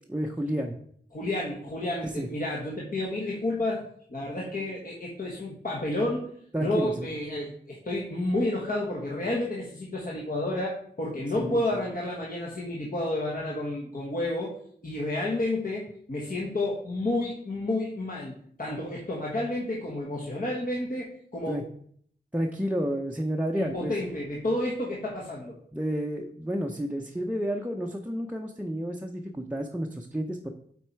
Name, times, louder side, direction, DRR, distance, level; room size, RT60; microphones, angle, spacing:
voice 1, 0.1-0.8 2.0-2.3 4.5-4.6 6.5-7.1 11.3-11.6 21.5-21.6 22.3-23.9 25.7-30.5, equal, 5° right, 2 dB, 0.7 m, -30 dB
voice 2, 1.1-3.8 4.1-6.3 6.6-14.6 14.8-21.6 23.6-25.5, left 1 dB, 45° left, -3 dB, 1.4 m, -30 dB
8.0 x 4.2 x 4.5 m, 0.63 s
cardioid pair, 60°, 20 cm